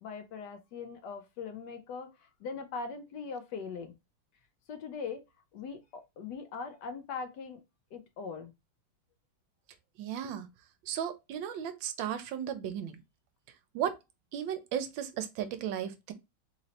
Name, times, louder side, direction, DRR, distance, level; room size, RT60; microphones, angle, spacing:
voice 1, 0.0-3.9 4.7-5.2 5.5-7.6 7.9-8.5, left 5 dB, 70° left, 1.1 m, -41 dB
voice 2, 10.0-10.5 10.9-13.0 13.7-13.9 14.3-16.1, right 9 dB, 75° right, 1.3 m, -35 dB
3.8 x 3.1 x 2.8 m
omnidirectional pair, 2.2 m